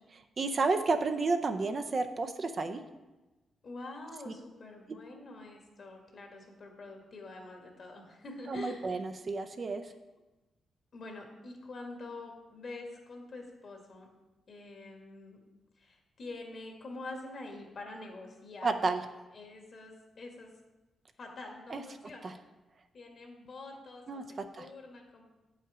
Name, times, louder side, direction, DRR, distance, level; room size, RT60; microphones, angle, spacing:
voice 1, 0.1-2.8 4.3-4.4 4.9-5.0 8.5-9.9 18.6-19.0 21.7-21.8 22.2-22.3 24.1-24.2 24.5-24.7, right 3 dB, 40° right, 7 dB, 0.6 m, -31 dB
voice 2, 3.6-9.0 10.9-14.1 14.5-15.4 15.8-18.7 19.3-20.5 21.2-22.4 22.9-25.2, left 2 dB, 55° left, 2 dB, 1.8 m, -46 dB
8.5 x 5.7 x 4.9 m, 1.1 s
cardioid pair, 100°, 0 cm